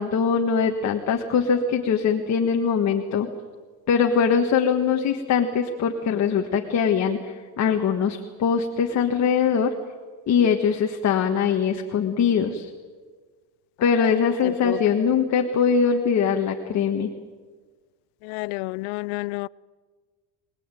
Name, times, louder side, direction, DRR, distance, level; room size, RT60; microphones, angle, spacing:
voice 1, 0.0-3.3 3.9-9.7 10.3-12.7 13.8-17.1, left 6 dB, 35° left, 1.7 m, -22 dB
voice 2, 18.3-19.5, left 24 dB, 85° left, 0.7 m, -29 dB
25.0 x 20.0 x 9.2 m
cardioid pair, 150°, 46 cm